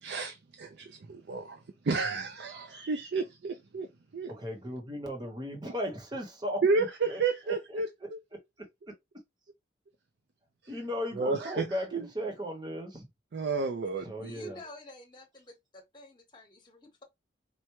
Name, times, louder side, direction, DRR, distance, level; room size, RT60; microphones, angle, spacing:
voice 1, 0.0-3.9 4.1-4.3 6.6-8.2 11.1-11.7 11.9-12.1 13.3-14.3, right 4 dB, 65° right, 0.5 m, -31 dB
voice 2, 4.3-7.2 8.0-8.4 10.7-13.0 14.0-14.6, equal, 25° right, 0.9 m, -36 dB
voice 3, 14.0-17.0, left 1 dB, 25° left, 1.0 m, -50 dB
4.4 x 2.1 x 3.0 m
head